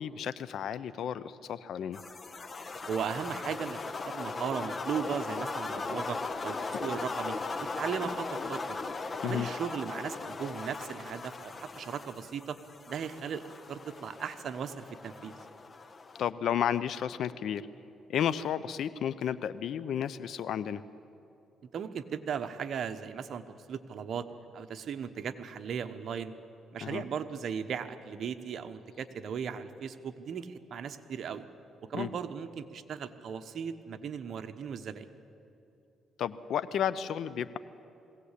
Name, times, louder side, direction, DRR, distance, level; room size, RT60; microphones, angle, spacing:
voice 1, 0.0-2.0 9.2-9.5 16.2-17.6 18.1-20.8 26.8-27.0 31.9-32.1 36.2-37.6, left 9 dB, 70° left, 15 dB, 0.7 m, -32 dB
sound 1, 1.9-16.3, left 3 dB, 35° left, 1.0 m, -38 dB
voice 2, 2.9-8.8 9.2-12.6 12.9-15.4 21.7-24.3 24.5-26.3 26.7-31.4 31.9-35.1, right 7 dB, 60° right, 9 dB, 1.1 m, -37 dB
21.5 x 17.0 x 8.4 m, 2.7 s
cardioid pair, 90°, 0 cm